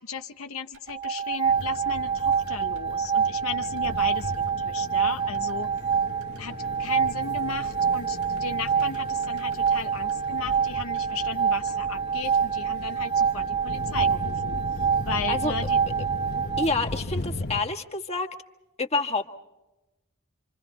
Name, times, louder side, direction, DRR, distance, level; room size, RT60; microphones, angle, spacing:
voice 1, 0.0-5.7 6.4-15.8, left 6 dB, 70° left, 7 dB, 0.8 m, -36 dB
sound 1, 0.7-12.9 13.2-13.3, right 2 dB, 90° right, 5.9 m, -55 dB
sound 2, 0.9-16.7, right 7 dB, 25° right, 1.4 m, -26 dB
sound 3, 1.4-17.6, left 1 dB, 50° left, 1.2 m, -38 dB
voice 2, 16.6-18.3 18.8-19.3, left 3 dB, 30° left, 2 dB, 1.7 m, -28 dB
27.5 x 27.0 x 4.1 m, 1.0 s
head